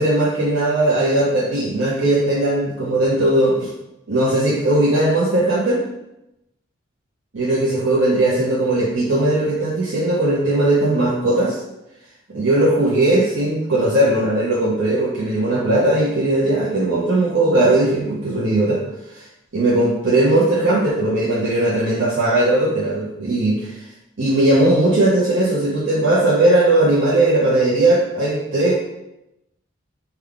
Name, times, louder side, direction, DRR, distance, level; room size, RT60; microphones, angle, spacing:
voice 1, 0.0-3.7 4.1-5.8 7.3-11.6 12.3-18.8 19.1-19.2 19.5-23.7 24.2-28.8, right 1 dB, 65° right, -6 dB, 0.6 m, -18 dB
3.6 x 2.3 x 3.4 m, 0.89 s
head